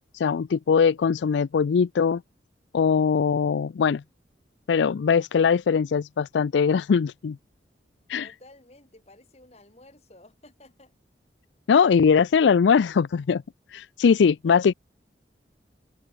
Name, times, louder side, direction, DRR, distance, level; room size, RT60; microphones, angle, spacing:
voice 1, 0.1-2.2 2.7-4.0 4.7-7.4 8.1-8.3 11.7-13.4 13.7-14.7, left 6 dB, 90° left, 0.4 m, -21 dB
voice 2, 8.2-10.9 14.2-14.6, left 2 dB, 35° left, 5.3 m, -53 dB
open air
head